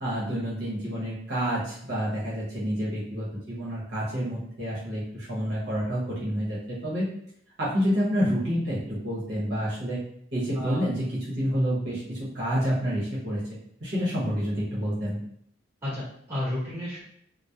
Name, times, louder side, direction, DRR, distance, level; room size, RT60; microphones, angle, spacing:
voice 1, 0.0-7.1 7.6-10.0 10.3-13.4 13.8-15.2, equal, 60° right, -8 dB, 0.8 m, -28 dB
voice 2, 10.5-10.8 15.8-17.0, left 1 dB, 15° right, -9 dB, 1.4 m, -32 dB
2.8 x 2.0 x 2.3 m, 0.69 s
head